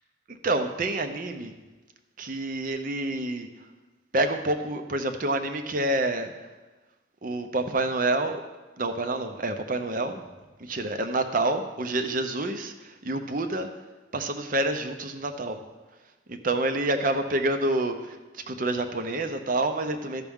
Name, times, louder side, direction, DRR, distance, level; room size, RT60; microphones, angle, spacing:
voice 1, 0.3-1.5 2.2-3.5 4.1-6.5 7.2-8.4 8.8-10.2 10.6-13.7 14.1-15.6 16.3-20.2, right 2 dB, 45° right, 7 dB, 0.6 m, -28 dB
13.0 x 5.8 x 3.6 m, 1.2 s
head